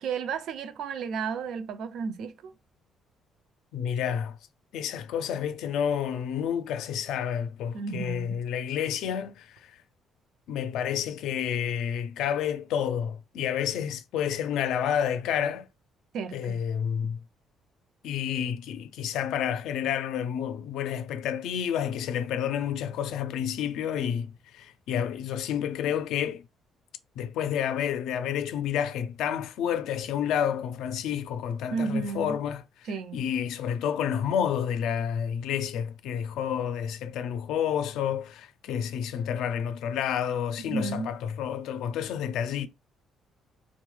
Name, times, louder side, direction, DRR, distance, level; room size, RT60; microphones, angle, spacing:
voice 1, 0.0-2.5 7.7-8.4 16.1-16.6 31.7-32.4 32.9-33.2 40.7-41.2, right 5 dB, 70° right, 0.4 m, -32 dB
voice 2, 3.7-4.4 4.7-9.7 10.5-15.7 16.3-17.2 18.0-26.4 27.2-32.6 33.1-42.7, left 9 dB, 85° left, 0.4 m, -30 dB
3.0 x 2.1 x 3.1 m
cardioid pair, 120°, 0 cm